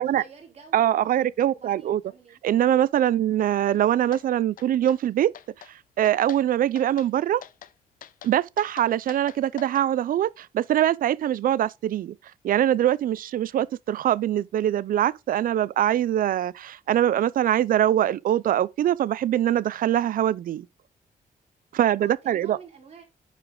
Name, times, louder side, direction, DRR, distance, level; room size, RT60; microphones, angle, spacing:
voice 1, 0.1-2.4 3.3-3.5 22.0-23.0, right 5 dB, 45° right, 4.0 m, -49 dB
voice 2, 0.7-2.0 2.4-5.3 6.0-7.4 8.2-12.2 12.4-20.7 21.7-22.6, right 11 dB, 70° right, 0.5 m, -23 dB
sound 1, 4.1-4.2 4.6-5.0 5.3-5.7 6.0-6.4 6.8-7.1 7.4-7.7 8.0-9.9, left 10 dB, 65° left, 0.6 m, -44 dB
9.9 x 5.0 x 3.7 m
cardioid pair, 130°, 15 cm